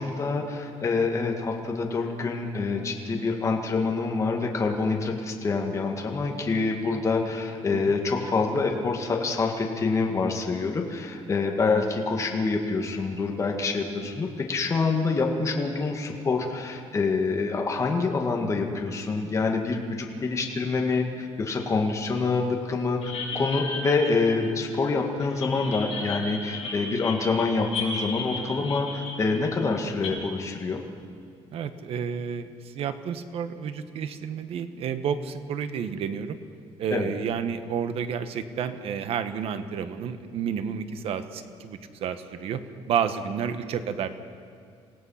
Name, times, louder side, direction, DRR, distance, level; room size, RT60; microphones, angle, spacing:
voice 1, 0.0-30.8 36.9-37.1, left 4 dB, 30° left, 1 dB, 1.9 m, -26 dB
sound 1, 23.0-24.9 25.2-30.1, left 3 dB, 65° left, 7.1 m, -35 dB
voice 2, 31.5-36.4 36.8-42.6 42.9-44.1, right 7 dB, 65° right, 10 dB, 1.2 m, -30 dB
27.0 x 17.0 x 5.8 m, 2.2 s
cardioid pair, 150°, 11 cm